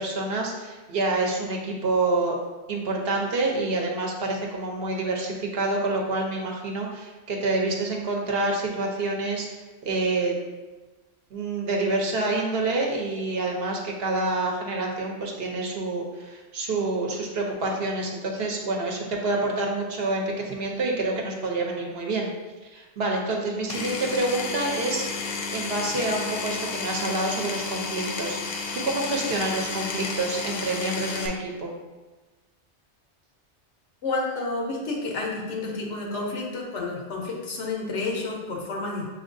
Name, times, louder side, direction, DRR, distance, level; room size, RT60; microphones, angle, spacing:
voice 1, 0.0-2.4 2.7-10.4 11.3-22.3 22.7-25.0 25.5-31.7, right 2 dB, 65° right, 0 dB, 0.9 m, -27 dB
Power tool, 23.7-31.3, left 4 dB, 65° left, 0.8 m, -32 dB
voice 2, 34.0-39.1, left 3 dB, 90° left, 0 dB, 1.2 m, -30 dB
6.1 x 2.9 x 2.6 m, 1.2 s
omnidirectional pair, 1.2 m